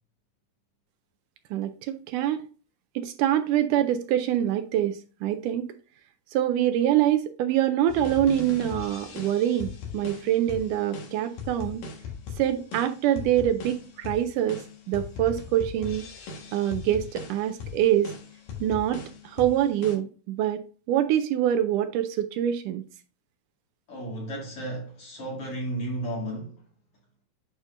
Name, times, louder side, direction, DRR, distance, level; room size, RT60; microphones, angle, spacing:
voice 1, 1.5-2.4 3.0-5.7 6.3-11.8 12.4-14.6 14.9-16.0 16.5-18.1 18.6-22.8, right 11 dB, 80° right, 2.0 m, -25 dB
sound 1, 7.9-20.0, left 5 dB, 90° left, 3.2 m, -39 dB
voice 2, 23.9-26.6, right 1 dB, 45° left, 2.6 m, -33 dB
9.0 x 5.0 x 2.5 m
omnidirectional pair, 3.8 m